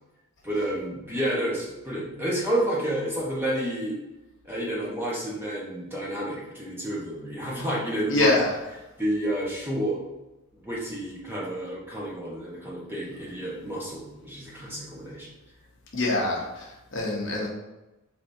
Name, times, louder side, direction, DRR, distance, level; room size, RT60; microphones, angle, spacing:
voice 1, 0.4-4.0 4.4-8.3 9.0-10.0 10.6-15.3, right 1 dB, 10° right, -6 dB, 1.0 m, -30 dB
voice 2, 8.1-8.6 15.9-17.5, left 2 dB, 55° left, -1 dB, 0.8 m, -25 dB
4.7 x 3.4 x 2.7 m, 1.0 s
head